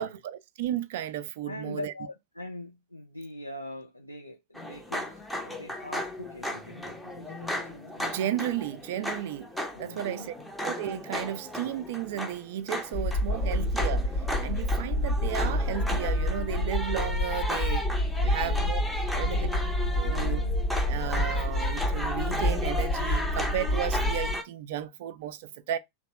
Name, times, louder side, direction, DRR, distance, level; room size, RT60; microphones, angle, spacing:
voice 1, 0.0-1.9 8.0-9.5 9.8-10.3 10.6-14.1 14.4-17.9 18.2-18.8 19.1-19.5 20.0-20.4 20.9-25.8, right 11 dB, 55° right, 0.3 m, -34 dB
voice 2, 1.4-8.1 9.7-10.3 13.3-13.5 18.2-18.7 19.2-20.6, left 1 dB, 85° left, 0.3 m, -43 dB
sound 1, 4.5-24.4, left 1 dB, 5° left, 0.6 m, -35 dB
sound 2, 12.9-24.3, left 1 dB, 45° left, 0.6 m, -28 dB
2.8 x 2.0 x 2.7 m
figure-of-eight pair, 90°, 0 cm